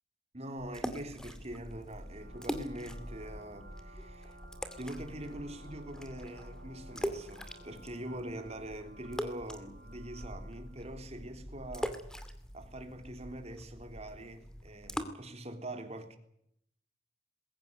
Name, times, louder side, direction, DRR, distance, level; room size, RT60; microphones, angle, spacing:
voice 1, 0.3-4.4 4.8-12.0 12.5-16.2, right 1 dB, 35° right, 3.4 m, -43 dB
sound 1, 0.6-15.0, equal, 5° left, 2.3 m, -43 dB
sound 2, 2.0-10.8, right 2 dB, 55° right, 5.9 m, -59 dB
Brass instrument, 2.1-8.4, right 1 dB, 70° right, 4.6 m, -57 dB
21.5 x 17.0 x 9.5 m
head